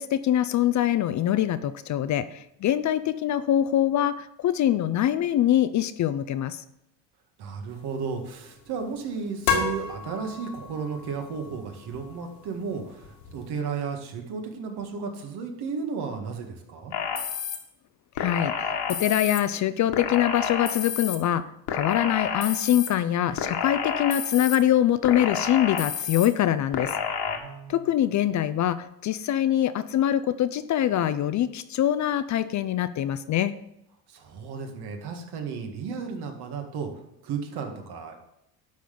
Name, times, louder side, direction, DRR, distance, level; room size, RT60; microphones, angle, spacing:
voice 1, 0.0-6.6 18.2-26.9 27.7-33.5, left 11 dB, 40° left, 13 dB, 0.5 m, -24 dB
voice 2, 7.4-16.9 27.3-27.9 34.1-36.9 37.2-38.2, right 5 dB, 60° right, 4 dB, 2.0 m, -34 dB
sound 1, 7.7-13.5, left 6 dB, 90° left, 2.0 m, -34 dB
sound 2, 16.9-17.6 18.2-19.4 19.9-21.2 21.7-22.9 23.4-24.6 25.0-26.3 26.7-27.4, left 7 dB, 70° left, 1.6 m, -29 dB
11.5 x 4.0 x 6.8 m, 0.83 s
cardioid pair, 120°, 44 cm